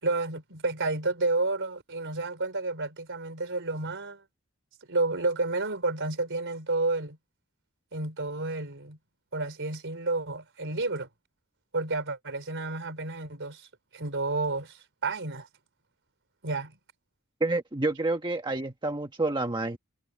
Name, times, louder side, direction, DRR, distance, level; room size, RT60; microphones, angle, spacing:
voice 1, 0.0-4.2 4.9-7.2 7.9-9.0 9.3-11.1 11.7-13.7 13.9-15.5 16.4-16.8, right 3 dB, 60° right, 4.5 m, -30 dB
voice 2, 17.4-19.8, right 2 dB, 20° right, 1.3 m, -28 dB
head